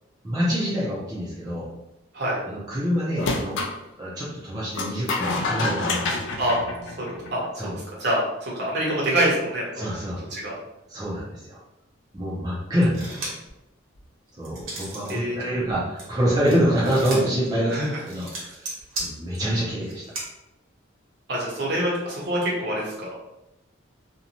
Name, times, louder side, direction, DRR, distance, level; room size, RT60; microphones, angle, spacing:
voice 1, 0.2-1.7 2.5-3.6 4.0-6.1 7.6-7.7 9.8-10.2 10.9-11.6 12.1-13.3 14.4-18.6 18.9-20.0, equal, 20° right, -8 dB, 0.5 m, -26 dB
sound 1, 3.2-3.8 4.7-7.5, left 3 dB, 65° left, 0.4 m, -28 dB
voice 2, 7.0-7.7 8.0-9.8 10.3-10.5 15.1-15.3 17.7-17.9 18.4-18.5 21.3-23.1, right 1 dB, 55° right, -4 dB, 0.9 m, -26 dB
sound 2, 12.8-13.5 13.9-15.2 15.5-20.2, right 2 dB, 90° right, 1.1 m, -36 dB
2.6 x 2.2 x 2.8 m, 0.92 s
head